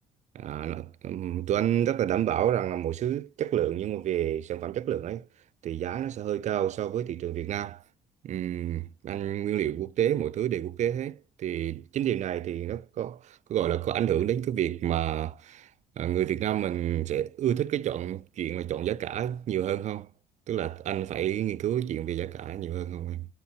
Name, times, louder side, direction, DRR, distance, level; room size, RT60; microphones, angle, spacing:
voice 1, 0.3-5.3 5.6-7.8 8.2-15.7 16.0-20.1 20.5-23.3, right 11 dB, 45° right, 0.4 m, -29 dB
11.0 x 4.4 x 2.9 m
cardioid pair, 110°, 17 cm